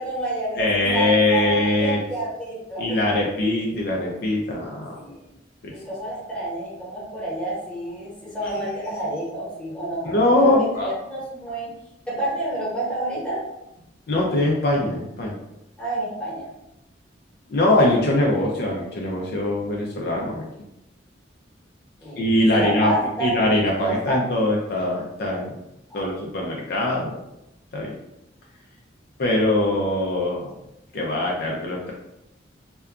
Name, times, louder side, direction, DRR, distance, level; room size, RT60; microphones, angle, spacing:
voice 1, 0.0-3.1 4.9-5.2 5.7-11.7 12.1-13.4 15.8-16.5 22.0-23.3 23.8-24.2 25.9-26.0, right 1 dB, 5° left, -8 dB, 1.0 m, -29 dB
voice 2, 0.6-2.0 2.8-4.9 5.6-5.7 10.0-10.9 14.1-15.4 17.5-20.4 22.2-22.9 23.2-25.5 25.9-27.2 27.7-28.0 29.2-30.5 30.9-31.9, left 1 dB, 55° left, -2 dB, 0.4 m, -22 dB
2.7 x 2.2 x 2.3 m, 0.87 s
head